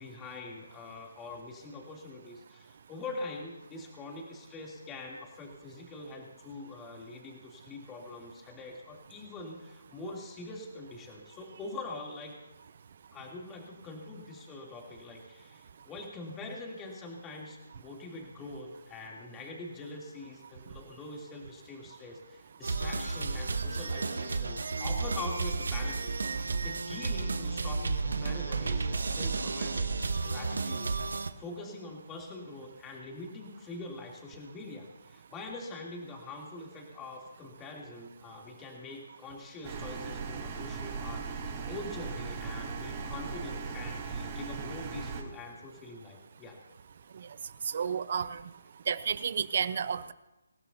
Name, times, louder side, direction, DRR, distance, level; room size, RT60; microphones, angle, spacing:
voice 1, 0.0-12.3 13.1-30.9 31.4-46.6, left 2 dB, 15° left, -1 dB, 3.0 m, -44 dB
sound 1, 22.6-31.3, right 4 dB, 65° right, 1.1 m, -32 dB
sound 2, 39.6-45.2, right 5 dB, 30° right, 3.6 m, -38 dB
voice 2, 47.6-48.4 48.9-50.1, right 7 dB, 50° right, 14 dB, 0.9 m, -31 dB
27.0 x 16.0 x 2.8 m, 0.97 s
figure-of-eight pair, 145°, 0 cm